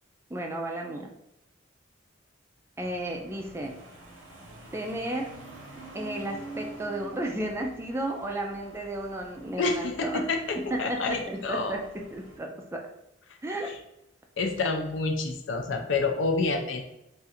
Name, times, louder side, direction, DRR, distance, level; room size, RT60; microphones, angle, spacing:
voice 1, 0.3-1.1 2.8-3.8 4.7-5.3 5.9-12.9 13.4-13.7, right 1 dB, 15° right, 1 dB, 0.3 m, -33 dB
sound 1, 2.8-12.4, right 2 dB, 80° right, 0.8 m, -46 dB
voice 2, 9.6-11.8 14.4-16.8, left 3 dB, 70° left, 4 dB, 0.5 m, -28 dB
2.5 x 2.5 x 4.1 m, 0.87 s
head